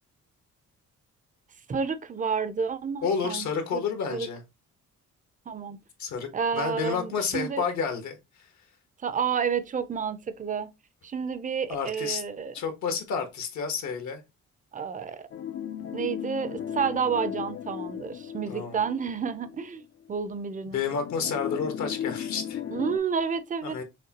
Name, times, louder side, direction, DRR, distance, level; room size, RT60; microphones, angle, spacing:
voice 1, 1.7-3.5 3.7-4.3 5.5-5.8 6.3-7.6 9.0-10.7 11.0-12.5 14.7-15.3 15.9-19.8 20.1-20.8 22.7-23.8, right 6 dB, 25° right, 0.6 m, -30 dB
voice 2, 3.0-4.4 6.0-8.5 11.7-12.2 12.5-14.2 18.5-18.8 20.7-22.6 23.6-23.8, left 6 dB, 70° left, 1.3 m, -30 dB
sound 1, 15.3-19.7 20.1-20.2 20.8-23.0, left 9 dB, 50° left, 0.5 m, -36 dB
6.5 x 2.2 x 2.9 m
cardioid pair, 90°, 30 cm